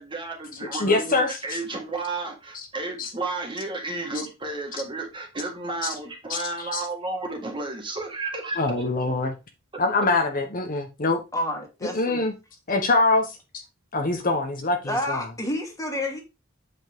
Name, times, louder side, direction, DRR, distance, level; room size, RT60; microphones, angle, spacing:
voice 1, 0.0-8.6, right 3 dB, 25° right, 2.0 m, -32 dB
voice 2, 0.6-1.6 3.0-3.1 6.3-6.4 6.7-6.8 8.6-9.3 9.8-11.2 11.8-12.3 12.7-13.6 13.9-15.2, left 3 dB, 45° left, 1.1 m, -24 dB
voice 3, 11.3-12.2 14.8-16.2, left 1 dB, 15° left, 2.4 m, -29 dB
8.2 x 5.6 x 3.6 m
head